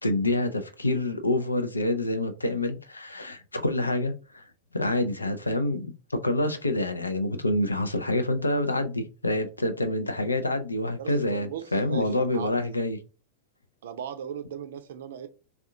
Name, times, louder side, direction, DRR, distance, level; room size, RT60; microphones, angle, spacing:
voice 1, 0.0-4.4 4.7-13.0, left 1 dB, 80° left, 0.5 m, -27 dB
voice 2, 11.0-12.8 13.8-15.3, right 8 dB, 60° right, 0.5 m, -38 dB
3.6 x 2.4 x 3.5 m
figure-of-eight pair, 90°, 0 cm